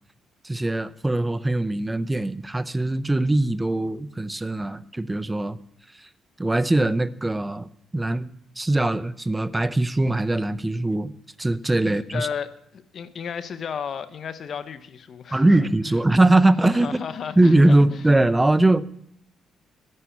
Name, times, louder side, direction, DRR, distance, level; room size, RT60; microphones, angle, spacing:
voice 1, 0.4-5.6 6.4-8.3 8.6-11.1 11.4-12.3 15.3-17.0 17.4-18.8, right 2 dB, 15° right, 0.6 m, -21 dB
voice 2, 11.8-15.7 16.6-18.0, left 7 dB, 55° left, 0.8 m, -34 dB
11.0 x 5.7 x 8.5 m
cardioid pair, 90°, 0 cm